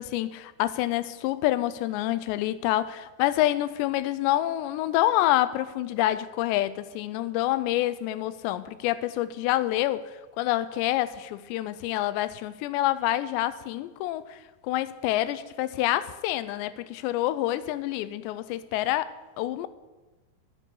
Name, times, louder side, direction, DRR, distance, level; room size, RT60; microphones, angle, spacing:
voice 1, 0.0-14.4 14.6-19.1 19.4-19.7, left 14 dB, 85° left, 2.8 m, -27 dB
10.0 x 8.3 x 9.9 m
omnidirectional pair, 5.0 m